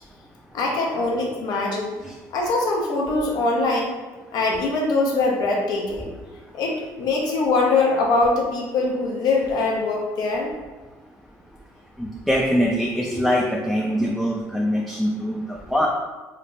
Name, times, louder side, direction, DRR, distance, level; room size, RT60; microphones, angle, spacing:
voice 1, 0.5-2.0 2.3-3.9 4.3-6.1 6.5-10.5, left 3 dB, 65° left, -1 dB, 0.7 m, -22 dB
voice 2, 12.0-15.9, equal, 5° left, -2 dB, 0.4 m, -23 dB
3.3 x 2.0 x 2.5 m, 1.3 s
supercardioid pair, 75°, 7 cm